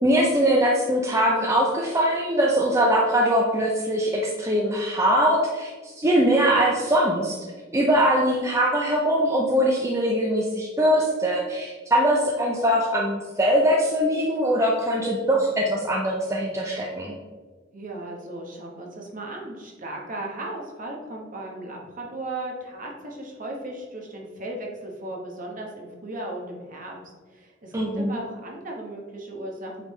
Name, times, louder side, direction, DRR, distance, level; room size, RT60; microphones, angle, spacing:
voice 1, 0.0-5.7 6.0-7.3 7.7-17.1 27.7-28.2, equal, 15° right, -1 dB, 0.5 m, -22 dB
voice 2, 17.7-26.9 27.3-29.9, right 1 dB, 45° right, 0 dB, 1.2 m, -36 dB
8.3 x 3.5 x 3.2 m, 1.4 s
head